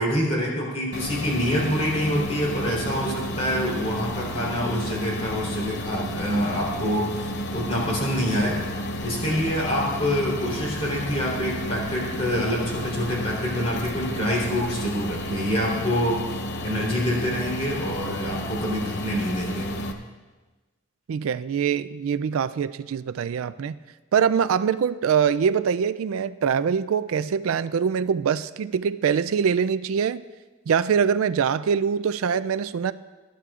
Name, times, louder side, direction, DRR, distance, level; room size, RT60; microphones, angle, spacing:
voice 1, 0.0-7.3 7.5-8.6 9.0-16.2 16.6-19.7, equal, 30° left, -3 dB, 3.5 m, -26 dB
sound 1, 0.9-19.9, left 1 dB, 50° left, 0.8 m, -32 dB
voice 2, 21.1-23.8 24.1-30.2 30.7-32.9, right 7 dB, 80° right, 14 dB, 0.4 m, -23 dB
19.0 x 11.5 x 2.5 m, 1.2 s
head